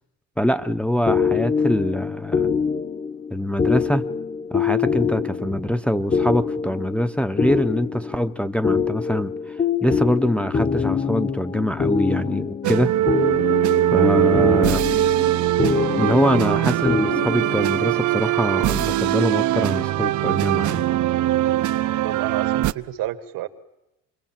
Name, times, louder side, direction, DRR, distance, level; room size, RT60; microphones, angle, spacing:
voice 1, 0.4-2.5 3.3-4.1 4.5-12.9 13.9-14.8 16.0-20.9, left 1 dB, 5° left, 0.8 m, -24 dB
sound 1, 1.1-17.8, left 6 dB, 20° left, 1.1 m, -25 dB
sound 2, 12.6-22.7, right 14 dB, 55° right, 0.8 m, -21 dB
voice 2, 22.0-23.5, right 14 dB, 75° right, 1.8 m, -30 dB
27.5 x 22.0 x 7.4 m
cardioid pair, 120°, 35 cm